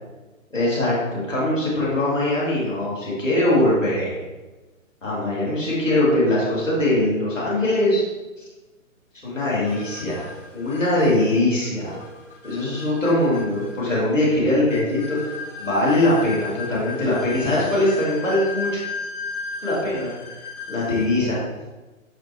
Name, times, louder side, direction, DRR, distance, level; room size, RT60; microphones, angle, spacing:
voice 1, 0.5-4.2 5.0-8.1 8.4-8.5 9.2-12.0 12.4-18.8 19.6-20.1 20.7-21.4, left 1 dB, ahead, -31 dB, 0.4 m, -22 dB
sound 1, 9.4-21.3, left 4 dB, 40° left, 1.6 m, -36 dB
6.5 x 5.9 x 3.1 m, 1.2 s
hypercardioid pair, 150°, 42 cm